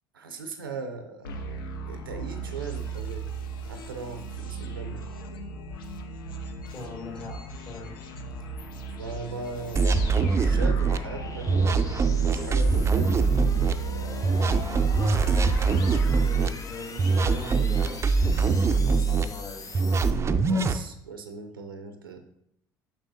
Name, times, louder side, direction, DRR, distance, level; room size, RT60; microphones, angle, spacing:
voice 1, 0.1-1.3 1.8-3.3 3.6-5.1 8.4-8.5 9.0-11.9 12.3-13.4 20.5-22.2, right 4 dB, 90° right, 7 dB, 0.6 m, -39 dB
sound 1, 1.2-16.9, right 3 dB, 80° left, 0.6 m, -36 dB
voice 2, 6.7-7.4 7.7-8.0 16.2-19.7, left 3 dB, 50° left, -2 dB, 2.6 m, -40 dB
sound 2, 7.8-20.1, left 4 dB, 30° left, 0.7 m, -44 dB
sound 3, 9.8-11.0 11.5-13.7 14.2-16.5 17.0-19.3 19.7-20.8, right 4 dB, 25° right, 0.4 m, -23 dB
6.2 x 5.9 x 2.7 m, 0.71 s
hypercardioid pair, 65°, 11 cm